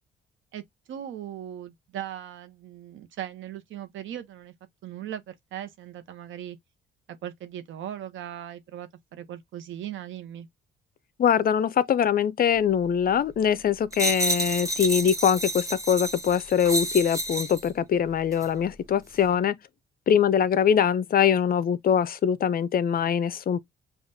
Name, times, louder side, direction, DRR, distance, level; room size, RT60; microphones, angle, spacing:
voice 1, 0.9-4.5 4.8-6.6 7.1-10.5 19.3-19.5, right 11 dB, 75° right, 0.8 m, -38 dB
voice 2, 11.2-19.5 20.1-23.6, left 8 dB, 50° left, 0.5 m, -23 dB
sound 1, 13.9-17.7 18.3-18.5, right 1 dB, 15° right, 0.9 m, -30 dB
5.5 x 2.4 x 2.6 m
cardioid pair, 90°, 20 cm